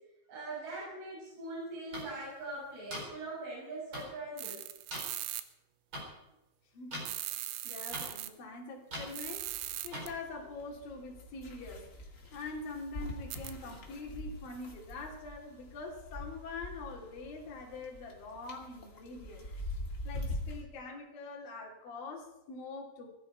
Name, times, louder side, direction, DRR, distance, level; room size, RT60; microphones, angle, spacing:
voice 1, 0.3-4.6, right 2 dB, 45° right, -6 dB, 8.6 m, -42 dB
sound 1, 1.9-2.0 2.9-3.0 3.9-4.0 4.9-5.0 5.9-6.0 6.9-7.0 7.9-8.0 8.9-9.1 9.9-10.0, equal, 25° right, 4.2 m, -39 dB
sound 2, 4.4-5.4 7.1-8.3 9.1-10.1 13.3-13.5, right 14 dB, 80° right, 3.1 m, -39 dB
voice 2, 6.7-9.5 9.8-11.9 12.3-19.7 20.0-23.1, left 3 dB, 50° left, -2 dB, 4.0 m, -44 dB
sound 3, 9.2-20.6, left 1 dB, 70° left, 0.7 m, -44 dB
20.5 x 14.5 x 4.6 m, 0.93 s
omnidirectional pair, 6.0 m